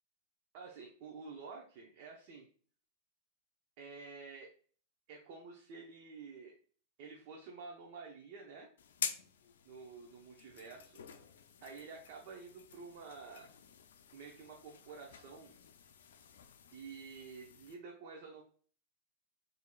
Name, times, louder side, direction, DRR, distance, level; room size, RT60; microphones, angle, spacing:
voice 1, 0.5-2.5 3.8-4.5 5.1-6.5 7.0-8.7 9.6-11.0 11.6-13.5 14.1-15.5 16.7-18.4, right 4 dB, 55° right, 0 dB, 0.7 m, -50 dB
sound 1, 8.8-17.8, left 7 dB, 80° left, 0.4 m, -48 dB
4.4 x 2.8 x 2.3 m, 0.43 s
hypercardioid pair, 115°, 0 cm